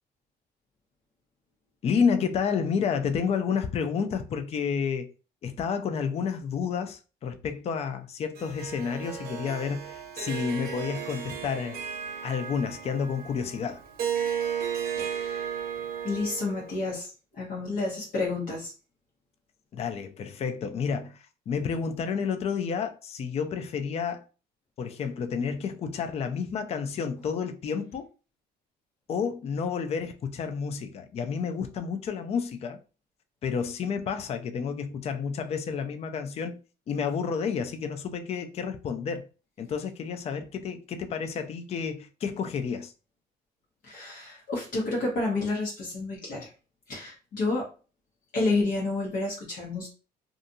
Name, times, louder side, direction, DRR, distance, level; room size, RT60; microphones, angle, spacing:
voice 1, 1.8-5.1 5.4-11.8 12.2-13.8 19.7-24.2 24.8-28.1 29.1-32.8 33.4-39.3 39.6-42.9, left 6 dB, 40° left, 0.4 m, -30 dB
Harp, 8.4-16.8, right 8 dB, 60° right, 0.6 m, -34 dB
voice 2, 15.0-15.5 16.0-17.1 17.3-18.7 43.8-46.5 46.9-47.7 48.3-49.9, left 3 dB, 55° left, 0.9 m, -30 dB
2.5 x 2.4 x 2.6 m
cardioid pair, 110°, 17 cm